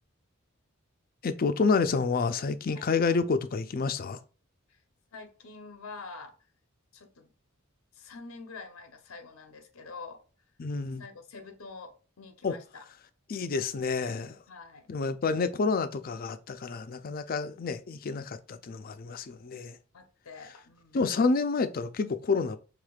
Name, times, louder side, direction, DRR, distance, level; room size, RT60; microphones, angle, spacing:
voice 1, 1.2-4.2 10.6-11.0 12.4-12.6 13.3-14.4 14.9-19.8 20.9-22.6, left 4 dB, 45° left, 0.4 m, -29 dB
voice 2, 5.1-6.4 6.9-7.3 7.9-10.2 11.0-12.8 14.5-14.9 19.0-19.4 19.9-21.0, left 4 dB, 90° left, 0.8 m, -46 dB
4.9 x 3.5 x 2.4 m
head